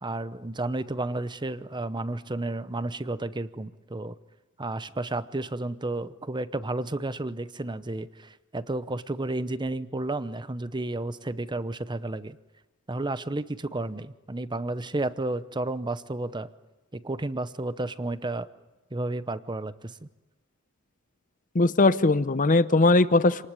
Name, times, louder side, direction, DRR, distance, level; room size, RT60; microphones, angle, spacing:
voice 1, 0.0-4.1 4.6-12.4 12.9-16.5 16.9-18.5 18.9-20.1, right 2 dB, 20° right, 14 dB, 0.8 m, -32 dB
voice 2, 21.5-23.5, left 2 dB, 40° left, 15 dB, 0.8 m, -20 dB
28.0 x 19.5 x 9.9 m, 1.1 s
head